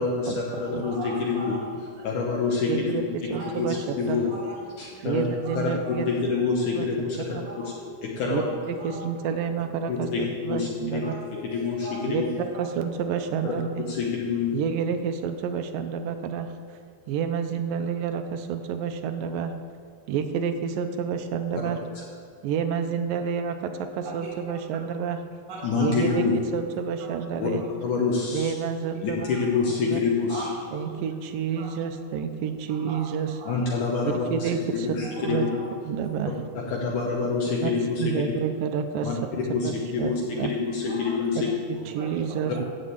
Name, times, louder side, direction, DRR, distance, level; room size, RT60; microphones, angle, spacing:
voice 1, 0.0-1.5 2.0-2.9 3.6-4.2 4.8-5.2 5.6-5.7 6.1-7.4 8.2-8.5 9.9-10.2 10.5-11.0 11.5-12.3 13.4-13.5 13.9-14.5 25.6-26.3 27.4-27.5 27.8-28.5 29.0-30.5 33.5-35.5 36.3-36.4 36.7-38.1 39.0-39.1 39.5-41.5 41.7-41.8, left 5 dB, 70° left, -2 dB, 2.5 m, -27 dB
voice 2, 0.8-2.1 3.3-6.2 7.4-9.0 9.9-10.2 11.0-12.0 12.3-12.6 13.5-13.6 24.0-24.3 25.5-26.2 27.0-27.1 29.2-29.4 30.3-31.1 31.6-31.7 32.7-33.5 35.0-36.3 40.9-41.3 42.0-42.6, right 1 dB, 55° right, -5 dB, 2.4 m, -41 dB
voice 3, 2.7-3.0 3.3-4.2 5.0-6.1 6.7-6.9 7.2-7.5 8.2-11.1 12.1-13.9 14.5-16.8 17.1-19.5 20.1-21.8 22.4-25.2 25.8-26.3 26.5-27.6 28.3-29.3 29.8-30.0 30.7-33.3 34.0-34.9 35.2-35.5 35.9-36.3 37.6-37.7 38.0-39.2 39.5-39.7 40.0-40.5 41.4-41.5 41.7-42.6, right 7 dB, 85° right, 8 dB, 2.5 m, -29 dB
14.5 x 5.2 x 8.2 m, 2.3 s
omnidirectional pair, 3.9 m